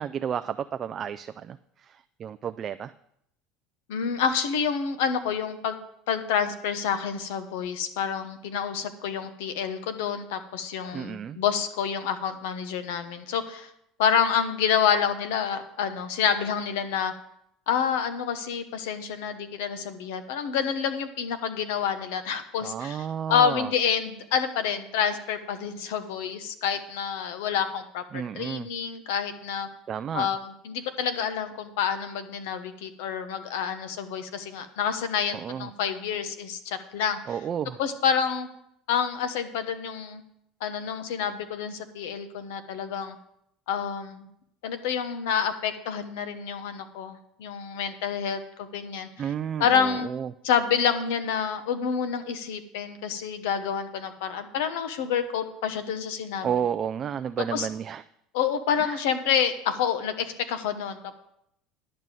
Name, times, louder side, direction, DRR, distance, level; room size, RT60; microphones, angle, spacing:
voice 1, 0.0-2.9 10.9-11.4 22.6-23.7 28.1-28.7 29.9-30.3 35.3-35.7 37.3-37.8 49.2-50.3 56.4-58.0 58.8-59.0, right 8 dB, 35° right, 10 dB, 0.3 m, -32 dB
voice 2, 3.9-5.8 6.1-13.7 14.0-17.1 17.7-29.7 30.1-30.4 30.6-37.2 37.8-38.5 38.9-40.2 40.6-43.1 43.7-44.3 44.6-49.1 49.6-50.1 50.4-56.5 57.5-57.7 58.3-61.1, left 7 dB, 90° left, 10 dB, 1.1 m, -28 dB
11.0 x 5.3 x 7.5 m, 0.76 s
supercardioid pair, 130°, 0 cm